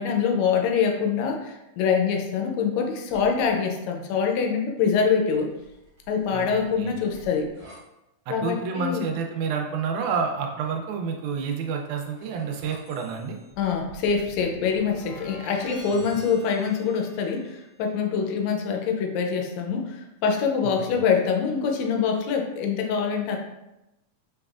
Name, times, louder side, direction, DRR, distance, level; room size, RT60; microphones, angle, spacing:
voice 1, 0.0-5.5 6.1-7.5 8.3-9.1 13.6-23.4, left 6 dB, 80° left, 2 dB, 1.8 m, -25 dB
sound 1, 3.1-3.5 5.4-7.8 11.3-17.7, right 1 dB, 45° right, 1.3 m, -48 dB
voice 2, 8.3-13.4 20.6-20.7, right 5 dB, 90° right, 3 dB, 2.0 m, -29 dB
5.4 x 3.3 x 2.4 m, 0.94 s
omnidirectional pair, 3.3 m